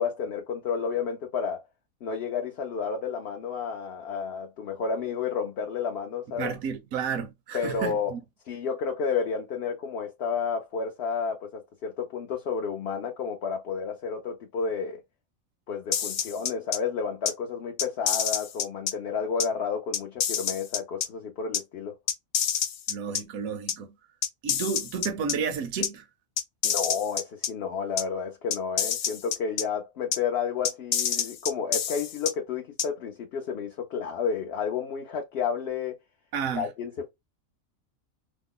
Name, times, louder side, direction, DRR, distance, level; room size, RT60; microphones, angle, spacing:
voice 1, 0.0-1.6 2.0-6.5 7.5-8.1 8.5-15.0 15.7-21.9 26.6-36.0 36.5-37.1, left 6 dB, 60° left, 0.7 m, -31 dB
voice 2, 6.4-8.2 22.9-23.9 24.4-26.0 36.3-36.7, right 6 dB, 80° right, 1.0 m, -31 dB
sound 1, 15.9-16.8 17.3-17.4 17.8-18.9 19.4-19.5 19.9-21.1 21.5-21.6 22.1-23.2 23.7-23.8 24.2-25.4 25.8-25.9 26.4-27.5 28.0-28.1 28.5-29.6 30.1-30.2 30.6-32.3 32.8-32.9, left 8 dB, 80° left, 1.0 m, -27 dB
2.9 x 2.0 x 3.7 m
omnidirectional pair, 1.4 m